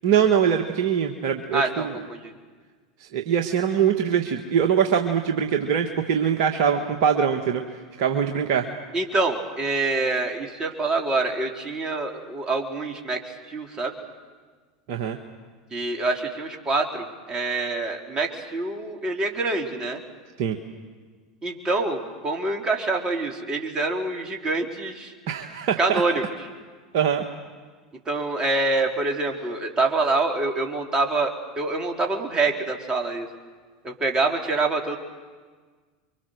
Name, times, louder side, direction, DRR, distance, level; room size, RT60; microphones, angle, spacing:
voice 1, 0.0-2.0 3.0-7.6 8.0-8.7 14.9-15.2 20.4-20.6 25.3-26.0 26.9-27.2, right 8 dB, 55° right, 4 dB, 1.7 m, -23 dB
voice 2, 1.5-2.3 8.9-13.9 15.7-20.0 21.4-25.1 25.8-26.2 28.1-33.3 33.8-35.0, right 3 dB, 25° right, 2 dB, 3.8 m, -26 dB
28.5 x 24.0 x 6.6 m, 1.5 s
hypercardioid pair, 85°, 3 cm